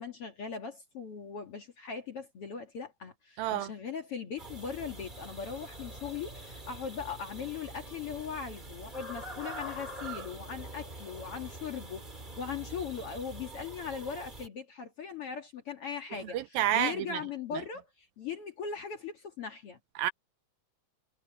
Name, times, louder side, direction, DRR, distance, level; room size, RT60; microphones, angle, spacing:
voice 1, 0.0-16.4 16.7-19.8, left 6 dB, 50° left, 2.0 m, -39 dB
voice 2, 3.4-3.7 16.1-17.2 17.5-17.6 20.0-20.1, right 12 dB, 80° right, 2.3 m, -30 dB
sound 1, 4.4-14.5, right 1 dB, 15° right, 1.7 m, -44 dB
omnidirectional pair, 4.5 m